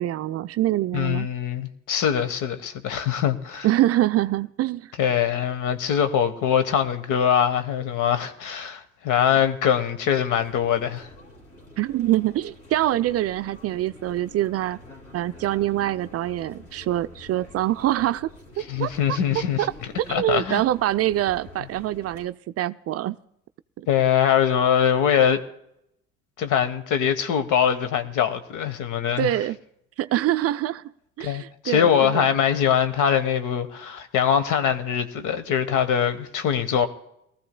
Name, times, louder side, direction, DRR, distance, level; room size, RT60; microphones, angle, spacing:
voice 1, 0.0-1.3 3.6-4.9 11.8-14.8 15.1-18.3 18.8-19.2 19.6-19.7 20.1-23.2 23.8-23.9 29.2-29.6 30.0-30.8 31.2-32.3, right 14 dB, 40° right, 0.5 m, -25 dB
voice 2, 0.9-3.7 5.0-11.1 18.7-19.6 20.1-20.6 23.9-25.4 26.4-29.3 31.2-36.9, left 8 dB, 55° left, 1.3 m, -22 dB
sound 1, 10.4-22.3, left 1 dB, 40° left, 2.8 m, -47 dB
22.5 x 14.5 x 2.2 m
hypercardioid pair, 55°, 36 cm